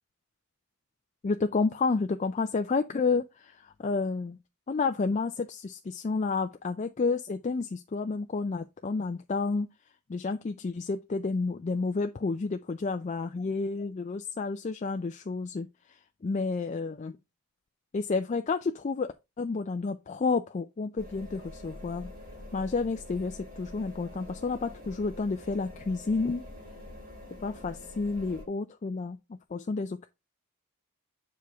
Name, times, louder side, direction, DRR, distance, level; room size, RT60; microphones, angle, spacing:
voice 1, 1.2-4.4 4.7-9.7 10.1-17.1 17.9-22.1 22.5-26.4 27.4-29.2 29.5-30.1, left 4 dB, 30° left, 0.3 m, -30 dB
sound 1, 21.0-28.4, left 1 dB, 40° right, 2.2 m, -46 dB
6.9 x 4.8 x 3.4 m
head